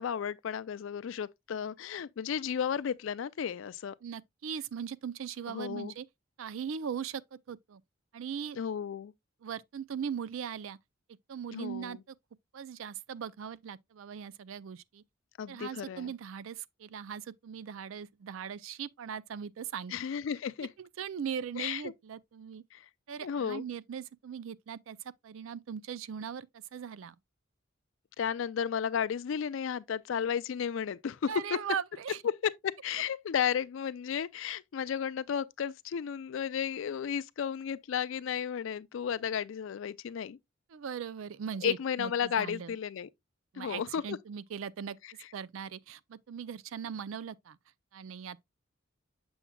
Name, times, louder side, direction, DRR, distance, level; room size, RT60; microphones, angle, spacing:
voice 1, 0.0-3.9 5.5-5.9 8.6-9.1 11.5-12.0 15.4-16.1 19.9-20.7 21.6-21.9 22.7-22.9 23.2-23.6 28.2-31.3 32.6-40.4 41.6-43.1 43.6-44.2, left 8 dB, 70° left, 0.4 m, -33 dB
voice 2, 4.0-6.1 6.4-7.8 8.1-8.6 9.4-10.8 11.3-12.2 12.5-15.0 15.5-19.9 20.8-22.6 23.1-25.0 25.2-27.2 31.3-32.2 40.7-42.8 43.5-45.0 45.3-47.6 47.9-48.4, right 7 dB, 80° right, 0.4 m, -39 dB
7.1 x 7.0 x 2.2 m
head